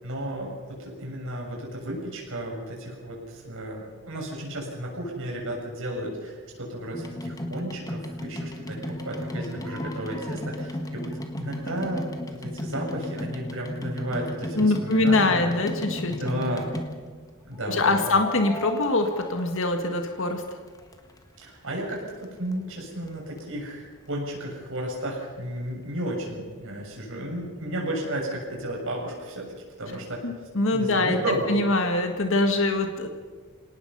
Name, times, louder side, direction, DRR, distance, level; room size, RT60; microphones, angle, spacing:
voice 1, 0.0-11.1 11.4-15.5 16.2-16.7 17.4-18.2 21.4-29.5 29.8-30.2 30.7-31.6, right 1 dB, 60° right, -1 dB, 7.0 m, -33 dB
sound 1, 6.9-17.3 18.1-20.2 20.5-21.4 22.0-22.1 22.2-22.3 22.5-22.6 23.1-23.2 23.4-23.5, left 1 dB, 15° left, 1.6 m, -35 dB
voice 2, 14.6-16.2 17.7-20.4 30.2-31.2 31.5-33.1, left 2 dB, 60° left, 5 dB, 1.8 m, -23 dB
26.5 x 18.5 x 5.6 m, 1.5 s
head